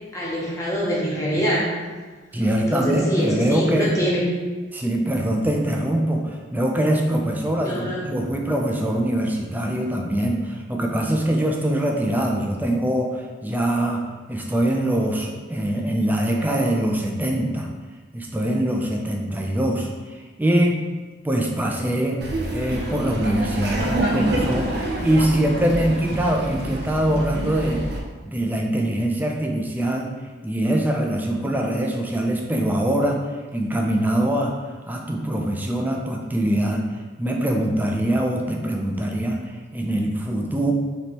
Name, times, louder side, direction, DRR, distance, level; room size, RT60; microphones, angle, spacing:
voice 1, 0.1-1.7 2.6-4.3 7.6-8.0, equal, 15° left, -5 dB, 0.9 m, -24 dB
voice 2, 2.3-3.9 4.7-14.0 14.3-17.7 18.1-20.8 21.2-22.2 22.5-27.8 28.2-30.1 30.4-33.2 33.5-34.6 34.9-36.8 37.2-40.7, right 1 dB, 10° right, 0 dB, 0.4 m, -23 dB
Laughter, 22.2-28.0, right 1 dB, 65° right, 0.6 m, -27 dB
3.2 x 3.1 x 4.0 m, 1.4 s
head